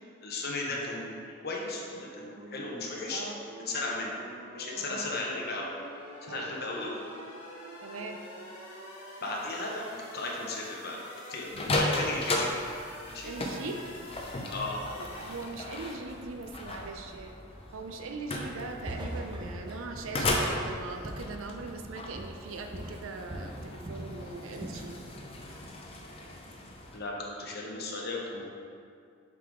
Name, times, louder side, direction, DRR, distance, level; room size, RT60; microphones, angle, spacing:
voice 1, 0.2-3.2 3.7-4.1 4.5-5.7 6.2-7.0 9.2-11.0 11.3-12.5 13.1-13.3 14.5-14.8 26.9-28.5, left 2 dB, 50° left, -2 dB, 0.9 m, -35 dB
sound 1, 1.7-15.9, equal, 80° left, 1.5 m, -47 dB
voice 2, 4.7-5.1 6.3-6.5 7.8-8.2 13.2-13.8 14.8-17.3 17.7-25.0, right 3 dB, 75° right, 4 dB, 0.5 m, -41 dB
sound 2, 11.5-27.0, left 1 dB, 30° left, 0.6 m, -36 dB
Walk footsteps, 18.3-18.6 18.9-21.9 22.1-22.5 22.7-24.1 24.5-24.8, right 1 dB, 20° right, 0.6 m, -41 dB
7.6 x 3.8 x 3.7 m, 2.3 s
head